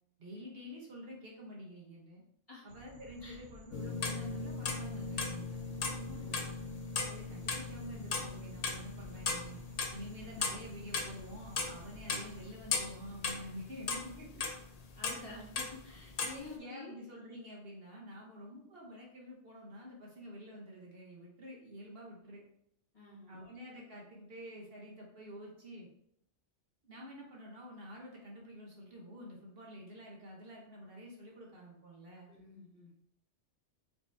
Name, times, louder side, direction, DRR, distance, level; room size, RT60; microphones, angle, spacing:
voice 1, 0.2-2.2 2.6-6.4 7.1-9.6 9.9-14.4 16.6-22.4 23.3-25.9 26.8-32.3, equal, 60° right, -3 dB, 1.1 m, -49 dB
sound 1, 2.7-12.5, right 2 dB, 80° right, 0.9 m, -55 dB
sound 2, 3.7-16.4, left 4 dB, 50° left, 0.5 m, -38 dB
voice 2, 6.0-6.7 15.0-17.0 22.9-23.4 32.3-32.9, left 3 dB, 30° left, -7 dB, 1.6 m, -50 dB
4.4 x 2.9 x 3.3 m, 0.73 s
omnidirectional pair, 1.2 m